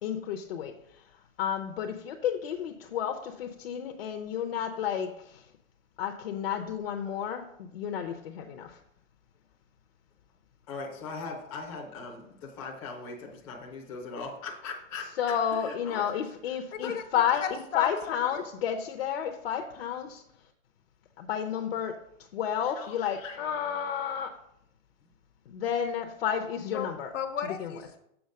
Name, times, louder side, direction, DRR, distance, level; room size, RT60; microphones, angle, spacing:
voice 1, 0.0-5.5 6.0-8.8 15.2-20.2 21.2-22.0 22.3-24.3 25.5-27.1 27.6-27.8, left 8 dB, 50° left, 3 dB, 0.7 m, -31 dB
voice 2, 10.7-15.1 15.5-16.2 16.8-16.9 22.6-23.4, left 4 dB, 10° left, -3 dB, 0.5 m, -40 dB
voice 3, 16.7-18.4 26.7-26.9 27.1-28.0, left 8 dB, 65° left, 8 dB, 1.1 m, -35 dB
7.1 x 4.1 x 6.4 m, 0.74 s
hypercardioid pair, 165°, 40 cm